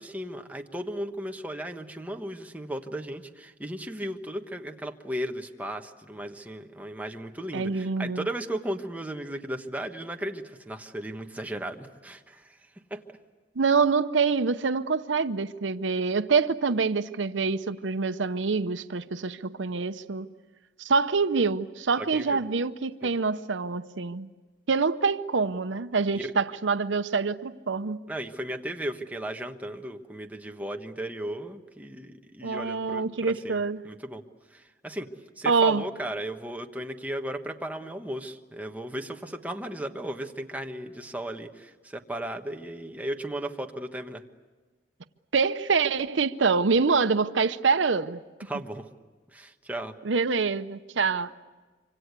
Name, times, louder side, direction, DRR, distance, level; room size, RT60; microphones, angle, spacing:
voice 1, 0.0-12.6 12.9-13.0 22.0-22.4 23.0-23.1 26.1-26.3 28.1-34.2 34.5-35.1 35.4-44.2 48.5-48.9 49.3-49.9, right 1 dB, 10° right, 1.3 m, -35 dB
voice 2, 7.5-8.3 13.6-20.3 20.8-24.3 24.7-28.0 32.4-33.8 35.5-35.8 45.3-48.2 50.0-51.3, right 4 dB, 90° right, 0.7 m, -25 dB
25.5 x 25.5 x 8.2 m
head